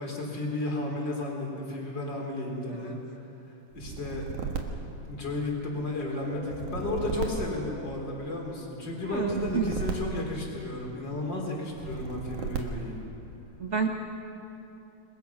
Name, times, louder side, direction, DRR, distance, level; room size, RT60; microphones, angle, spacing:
voice 1, 0.0-3.0 3.7-4.3 5.0-13.0, left 2 dB, 35° left, -1 dB, 4.2 m, -33 dB
sound 1, 3.7-5.7 6.4-8.3 9.0-11.0 11.7-13.1, right 5 dB, 80° right, 3.1 m, -36 dB
sound 2, 6.2-9.8, equal, 90° left, 4.4 m, -43 dB
voice 2, 9.0-9.7 13.6-13.9, right 5 dB, 40° right, 1 dB, 1.1 m, -29 dB
29.0 x 20.5 x 5.8 m, 2.8 s
omnidirectional pair, 3.5 m